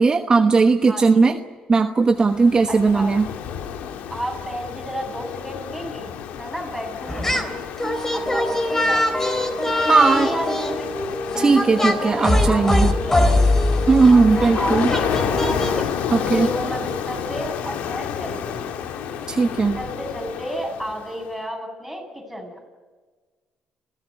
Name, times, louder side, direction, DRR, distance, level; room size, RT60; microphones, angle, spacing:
voice 1, 0.0-1.4 1.7-3.3 9.9-10.3 11.4-12.9 13.9-14.9 16.3-16.5 19.3-19.8, right 4 dB, 35° right, 7 dB, 1.2 m, -17 dB
voice 2, 0.9-1.4 2.7-3.1 4.1-7.6 8.1-9.4 9.8-10.9 11.6-13.4 14.1-15.5 16.1-18.7 19.7-22.7, equal, ahead, 0 dB, 8.0 m, -32 dB
Ocean, 2.1-21.3, left 8 dB, 80° left, 1.8 m, -30 dB
sound 1, 7.1-7.5 7.8-15.8, left 1 dB, 20° left, 3.7 m, -22 dB
28.5 x 16.5 x 9.4 m, 1.4 s
cardioid pair, 80°, 2 cm